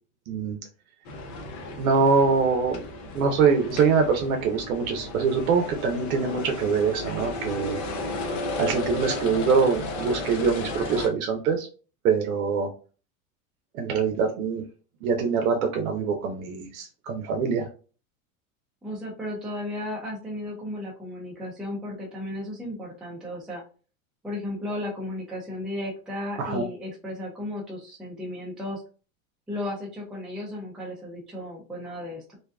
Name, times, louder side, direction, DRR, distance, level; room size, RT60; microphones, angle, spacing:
voice 1, 0.3-0.6 1.8-2.8 3.1-7.9 8.6-11.7 12.0-12.7 13.7-14.6 15.0-17.7 26.4-26.6, right 5 dB, 80° right, 3 dB, 0.6 m, -24 dB
sound 1, 1.1-11.1, left 2 dB, 40° left, 0.7 m, -34 dB
voice 2, 18.8-23.6 24.2-28.8 29.5-32.4, left 1 dB, ahead, -4 dB, 0.5 m, -34 dB
2.7 x 2.2 x 2.2 m, 0.37 s
supercardioid pair, 120°, 42 cm